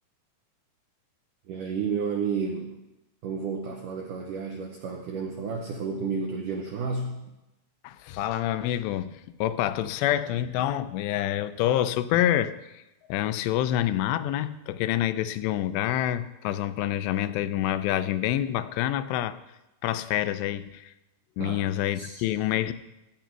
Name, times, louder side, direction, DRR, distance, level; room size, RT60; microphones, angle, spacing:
voice 1, 1.5-2.8 3.2-7.2 21.4-21.7 22.0-22.2, right 5 dB, 80° right, 1.9 m, -31 dB
voice 2, 7.8-12.8 13.1-19.4 19.8-20.9 21.4-22.7, left 12 dB, 85° left, 2.7 m, -27 dB
15.0 x 9.2 x 4.6 m
omnidirectional pair, 4.9 m